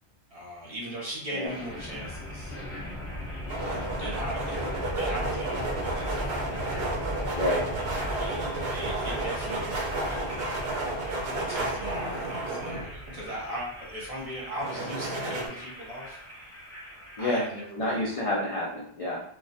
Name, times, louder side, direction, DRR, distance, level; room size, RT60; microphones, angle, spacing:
voice 1, 0.3-2.6 3.6-6.4 6.7-7.0 7.9-10.7 11.0-16.2 17.2-18.1, equal, 45° right, -5 dB, 0.5 m, -39 dB
sound 1, 1.5-17.5, equal, 5° left, 0.7 m, -38 dB
sound 2, 3.5-13.3 14.6-15.5, right 2 dB, 70° right, 0.8 m, -32 dB
voice 2, 7.3-7.6 17.2-17.4 17.8-19.2, left 1 dB, 65° left, -4 dB, 0.3 m, -28 dB
2.2 x 2.1 x 2.6 m, 0.69 s
omnidirectional pair, 1.1 m